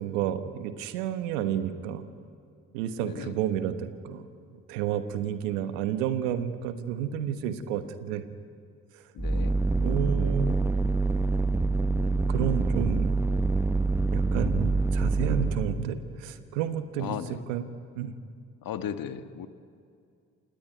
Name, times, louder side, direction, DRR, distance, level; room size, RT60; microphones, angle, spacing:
voice 1, 0.0-2.0 2.7-4.2 4.7-8.2 8.9-9.0 9.8-10.6 12.3-13.4 14.1-17.7 17.9-18.1, right 9 dB, 90° right, 10 dB, 1.2 m, -31 dB
voice 2, 3.0-3.4 9.1-9.6 17.0-17.4 18.6-19.5, left 9 dB, 65° left, 9 dB, 1.5 m, -36 dB
sound 1, 9.2-15.8, right 3 dB, 5° right, 0.9 m, -26 dB
28.0 x 18.5 x 9.5 m, 2.3 s
hypercardioid pair, 45°, 37 cm